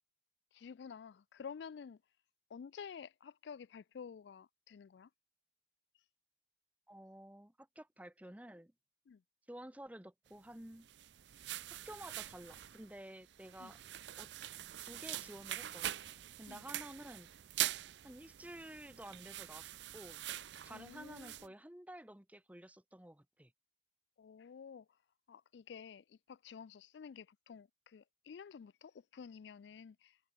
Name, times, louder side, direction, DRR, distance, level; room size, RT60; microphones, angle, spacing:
voice 1, 0.5-2.0 2.5-5.1 9.1-9.2 13.6-13.7 16.5-16.7 20.7-21.5 24.2-24.9 25.3-30.2, left 6 dB, 80° left, 0.4 m, -51 dB
voice 2, 6.9-8.7 9.5-10.9 11.7-13.8 14.2-14.3 14.8-16.0 16.4-17.3 18.0-20.2 20.6-23.5, right 1 dB, 10° right, 0.9 m, -52 dB
sound 1, 10.7-21.5, right 13 dB, 85° right, 0.5 m, -44 dB
head